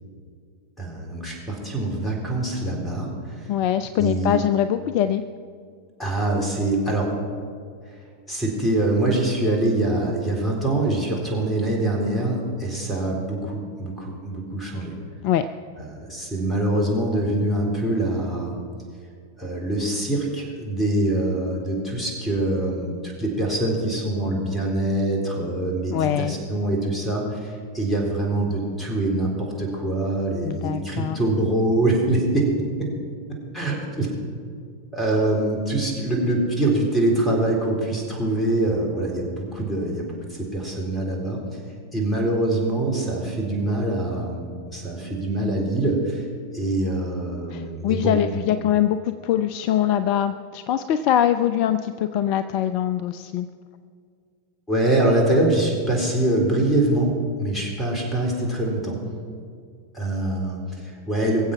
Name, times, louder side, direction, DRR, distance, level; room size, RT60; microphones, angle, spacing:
voice 1, 0.8-3.5 4.0-4.4 6.0-7.1 8.3-15.0 15.8-18.6 19.4-32.5 32.8-32.9 33.5-34.1 34.9-41.4 41.9-46.2 46.5-48.5 54.7-59.0 59.9-61.5, right 1 dB, 10° left, 0 dB, 3.9 m, -24 dB
voice 2, 3.5-5.2 15.2-15.5 25.9-26.3 30.4-31.2 47.5-53.5, left 10 dB, 45° left, 12 dB, 0.5 m, -23 dB
22.5 x 7.7 x 5.9 m, 2.2 s
figure-of-eight pair, 90°, 0 cm